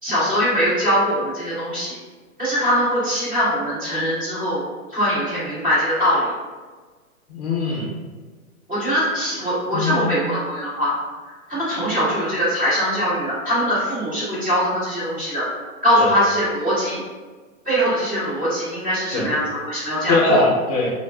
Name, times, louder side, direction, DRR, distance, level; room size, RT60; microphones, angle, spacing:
voice 1, 0.0-1.9 2.4-4.6 4.9-6.3 8.7-10.9 11.5-15.5 15.8-17.0 17.6-20.4, equal, 10° right, -14 dB, 1.4 m, -22 dB
voice 2, 7.3-7.9 9.7-10.1 16.0-16.1 19.1-19.3 20.1-20.9, left 3 dB, 30° left, -4 dB, 0.7 m, -21 dB
4.4 x 2.2 x 2.3 m, 1.4 s
hypercardioid pair, 175°, 42 cm